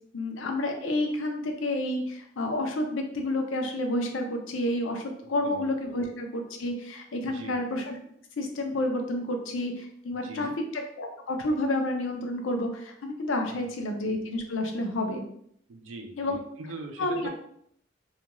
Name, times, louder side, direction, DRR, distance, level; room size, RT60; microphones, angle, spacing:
voice 1, 0.1-7.9 8.4-15.2 16.2-16.4 17.0-17.3, left 1 dB, 85° left, 3 dB, 0.5 m, -30 dB
voice 2, 5.2-6.0 7.3-7.6 10.1-10.5 13.5-13.6 15.7-17.3, right 3 dB, 90° right, 4 dB, 0.4 m, -42 dB
2.4 x 2.2 x 2.9 m, 0.69 s
head